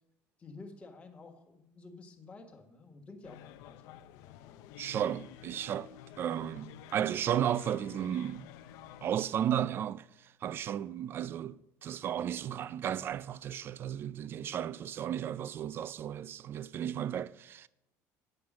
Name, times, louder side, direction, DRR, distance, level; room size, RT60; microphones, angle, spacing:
voice 1, 0.4-4.7 14.2-14.6, left 3 dB, 20° left, 1.4 m, -52 dB
sound 1, 3.2-9.1, left 11 dB, 85° left, 0.5 m, -51 dB
voice 2, 4.8-5.9 6.2-8.5 9.0-10.0 10.4-17.7, right 10 dB, 40° right, 0.4 m, -34 dB
8.8 x 7.8 x 6.1 m
cardioid pair, 140°, 6 cm